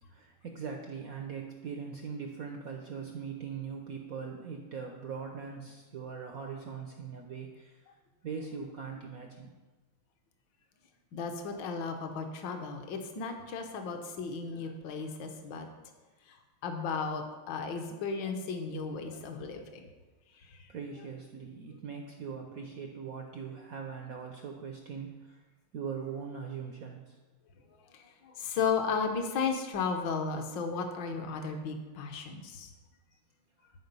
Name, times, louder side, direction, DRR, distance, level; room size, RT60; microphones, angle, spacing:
voice 1, 0.0-7.9 8.2-9.5 20.7-25.4 25.7-27.2, right 6 dB, 70° right, 2 dB, 0.8 m, -41 dB
voice 2, 11.1-15.7 16.3-16.4 16.6-19.8 27.9-32.7, left 5 dB, 65° left, 5 dB, 1.5 m, -34 dB
11.0 x 4.8 x 5.3 m, 1.2 s
omnidirectional pair, 2.4 m